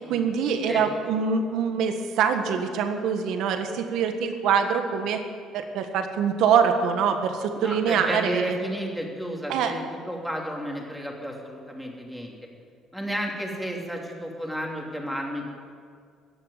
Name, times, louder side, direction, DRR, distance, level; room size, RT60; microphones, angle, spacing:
voice 1, 0.1-5.2 5.5-8.5 9.5-9.7, right 6 dB, 75° right, 6 dB, 1.5 m, -24 dB
voice 2, 7.6-12.3 12.9-15.5, equal, ahead, 0 dB, 2.9 m, -32 dB
17.5 x 7.2 x 9.9 m, 2.2 s
cardioid pair, 100°, 0 cm